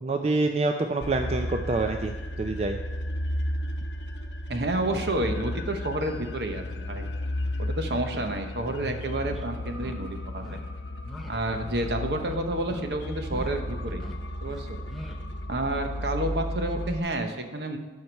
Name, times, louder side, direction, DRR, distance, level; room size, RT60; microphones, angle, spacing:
voice 1, 0.0-2.8, right 3 dB, 35° right, 5 dB, 0.4 m, -27 dB
sound 1, 1.0-17.0, left 1 dB, 80° left, 0.8 m, -34 dB
voice 2, 4.5-7.1 7.6-10.4 11.3-14.0 14.4-14.8 15.5-17.8, right 1 dB, 65° right, 5 dB, 0.9 m, -30 dB
sound 2, 8.7-8.8 9.3-9.4 9.7-10.0 10.4-10.6 11.0-11.3 11.6-11.9 12.2-12.8 13.2-13.5 13.8-14.2 14.5-15.2, left 1 dB, ahead, 0.7 m, -43 dB
11.0 x 5.7 x 4.6 m, 1.3 s
head